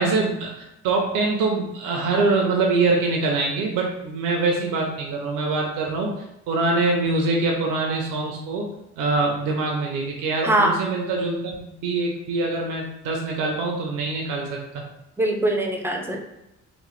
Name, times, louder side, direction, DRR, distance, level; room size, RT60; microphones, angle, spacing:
voice 1, 0.0-6.1 6.5-8.7 9.0-14.6, right 3 dB, 90° right, 0 dB, 0.5 m, -24 dB
voice 2, 10.4-10.8 15.2-16.2, right 1 dB, 10° right, 2 dB, 0.4 m, -22 dB
2.9 x 2.0 x 3.0 m, 0.88 s
cardioid pair, 90°, 30 cm